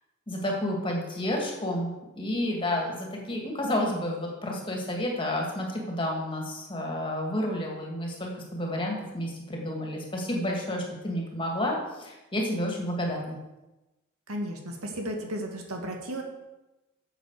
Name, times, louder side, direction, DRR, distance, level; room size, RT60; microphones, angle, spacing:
voice 1, 0.3-13.4, left 1 dB, 25° left, -1 dB, 2.4 m, -30 dB
voice 2, 14.3-16.2, right 1 dB, 80° right, 2 dB, 1.9 m, -34 dB
12.0 x 7.8 x 4.9 m, 1.0 s
head